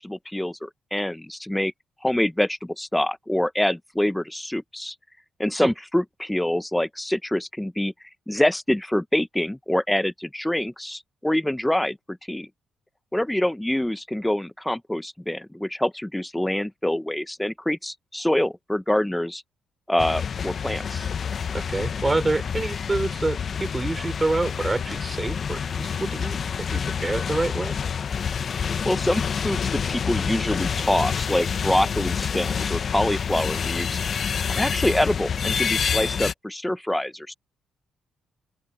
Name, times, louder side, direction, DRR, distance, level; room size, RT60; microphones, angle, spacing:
voice 1, 0.0-1.7 2.0-4.9 5.4-7.9 8.3-12.5 13.1-19.4 19.9-21.1 28.6-34.0 34.5-37.3, left 1 dB, 5° left, 1.2 m, -25 dB
sound 1, 20.0-36.3, left 7 dB, 50° left, 0.8 m, -28 dB
voice 2, 21.5-26.4 26.7-27.8, right 2 dB, 20° right, 5.0 m, -27 dB
open air
cardioid pair, 90°, 0 cm